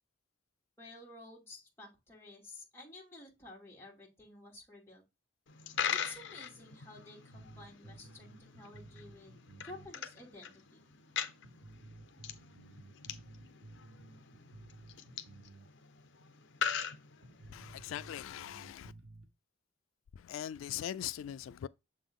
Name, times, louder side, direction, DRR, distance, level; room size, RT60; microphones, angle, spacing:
voice 1, 0.8-5.0 5.9-10.8, left 2 dB, 15° left, 2.6 m, -52 dB
Coin (dropping), 5.5-17.7, left 7 dB, 65° left, 0.7 m, -42 dB
sound 1, 7.3-9.9 10.2-10.3 10.9-11.0 11.4-15.7 16.0-16.1 16.7-16.8 17.2-19.3, right 2 dB, 85° right, 1.2 m, -54 dB
voice 2, 17.5-18.9 20.2-21.7, left 11 dB, 85° left, 0.3 m, -41 dB
7.1 x 3.9 x 3.6 m
head